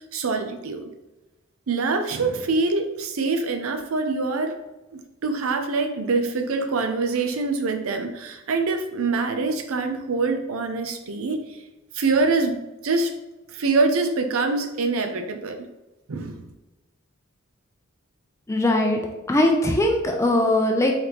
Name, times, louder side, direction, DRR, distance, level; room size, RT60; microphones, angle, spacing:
voice 1, 0.1-0.9 1.7-4.6 5.2-11.6 11.9-13.1 13.5-15.7 16.1-16.4, right 3 dB, 75° right, 6 dB, 0.5 m, -24 dB
voice 2, 18.5-19.0 19.3-20.9, left 1 dB, 15° left, 2 dB, 0.4 m, -20 dB
3.9 x 3.4 x 2.9 m, 1.1 s
head